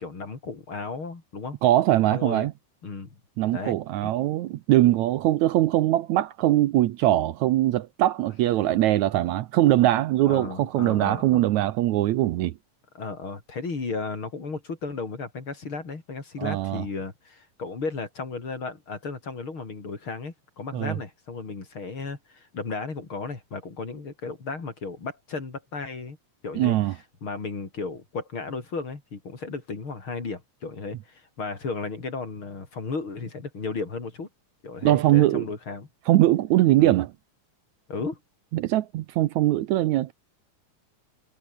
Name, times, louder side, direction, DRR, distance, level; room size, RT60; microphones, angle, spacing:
voice 1, 0.0-1.6 2.1-2.5 2.8-3.2 3.5-4.1 10.3-11.5 12.9-26.2 26.4-34.3 34.6-35.9 36.8-37.0 37.9-38.2, left 4 dB, 40° left, 4.6 m, -34 dB
voice 2, 1.6-2.5 3.4-12.5 16.4-16.8 20.7-21.0 26.6-26.9 34.8-35.5 36.1-37.1 38.5-40.1, right 14 dB, 75° right, 2.0 m, -21 dB
omnidirectional pair, 3.6 m